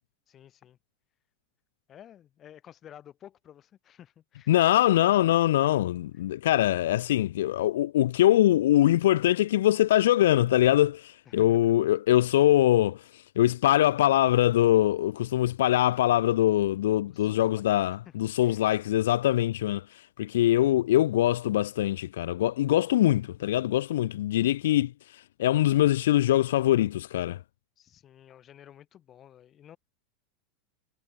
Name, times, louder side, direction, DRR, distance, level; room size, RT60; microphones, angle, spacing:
voice 1, 0.3-0.8 1.9-4.5 11.2-11.7 17.0-17.6 18.0-18.6 27.8-29.8, left 10 dB, 20° left, 1.5 m, -52 dB
voice 2, 4.5-13.0 13.4-19.8 20.2-24.9 25.4-27.4, left 13 dB, 85° left, 0.3 m, -23 dB
supercardioid pair, 170°, 0 cm